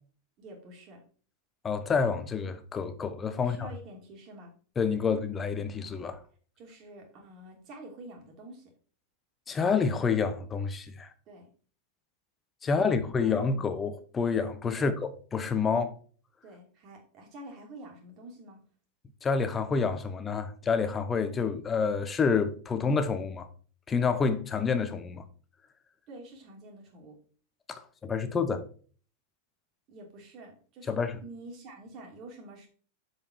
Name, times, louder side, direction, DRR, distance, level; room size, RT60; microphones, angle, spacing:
voice 1, 0.4-1.0 3.4-4.5 6.6-8.7 11.3-11.5 12.8-13.6 14.7-14.9 16.4-18.6 26.1-27.2 29.9-32.7, right 2 dB, 40° right, 2.6 m, -48 dB
voice 2, 1.6-3.7 4.8-6.2 9.5-11.1 12.6-15.9 19.2-23.5 23.9-25.2 27.7-28.6 30.9-31.2, left 5 dB, 20° left, 0.9 m, -28 dB
7.3 x 4.9 x 4.5 m
figure-of-eight pair, 90°, 0 cm